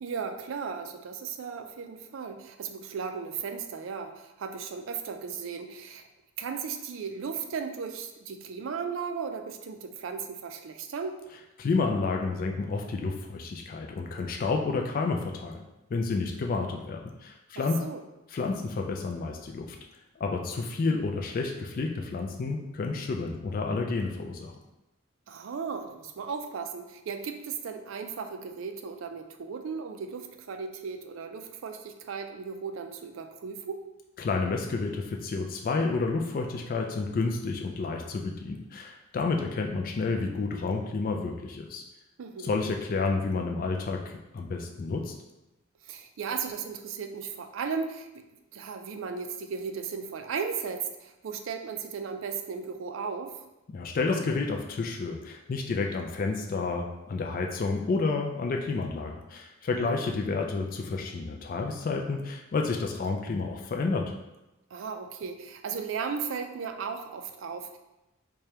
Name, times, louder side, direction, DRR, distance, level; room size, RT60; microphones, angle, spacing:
voice 1, 0.0-6.0 6.4-11.2 17.6-18.0 25.3-33.8 42.2-42.5 45.9-48.1 48.5-53.3 59.7-59.9 64.7-67.8, right 6 dB, 75° right, 6 dB, 0.4 m, -36 dB
voice 2, 11.6-15.6 15.9-17.8 18.3-19.8 20.2-24.5 34.2-41.8 42.4-44.0 44.3-45.1 53.7-64.1, left 3 dB, 45° left, 2 dB, 0.3 m, -30 dB
4.8 x 2.2 x 2.9 m, 0.96 s
head